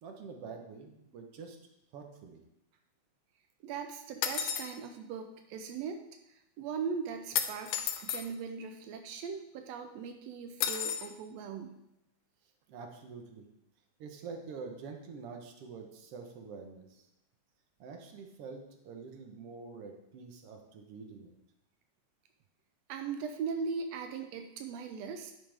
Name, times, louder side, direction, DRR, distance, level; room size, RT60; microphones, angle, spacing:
voice 1, 0.0-1.6 1.9-2.4 12.7-13.4 14.0-17.0 17.8-21.3, right 5 dB, 60° right, 4 dB, 1.7 m, -46 dB
voice 2, 3.6-6.0 6.6-11.8 22.9-25.3, right 5 dB, 90° right, 6 dB, 1.4 m, -39 dB
sound 1, 4.2-4.7 7.4-8.2 10.6-11.1, left 10 dB, 80° left, 2.1 m, -32 dB
10.5 x 8.1 x 3.5 m, 0.86 s
omnidirectional pair, 3.7 m